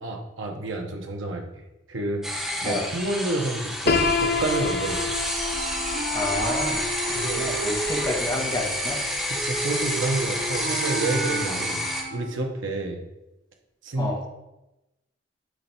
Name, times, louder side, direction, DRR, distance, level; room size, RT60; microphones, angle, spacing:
voice 1, 0.0-2.2 2.6-5.1 7.1-7.5 9.3-13.0 13.8-14.3, right 2 dB, 80° right, 2 dB, 1.0 m, -29 dB
sound 1, 2.2-12.0, equal, ahead, 1.0 m, -29 dB
Piano, 3.9-9.7, left 4 dB, 50° left, 0.5 m, -29 dB
Wind instrument woodwind instrument, 5.5-12.5, right 2 dB, 60° right, 2.7 m, -34 dB
voice 2, 6.1-9.0 11.5-11.6 14.0-14.2, left 2 dB, 20° left, -2 dB, 1.1 m, -30 dB
9.4 x 3.3 x 4.5 m, 0.95 s
head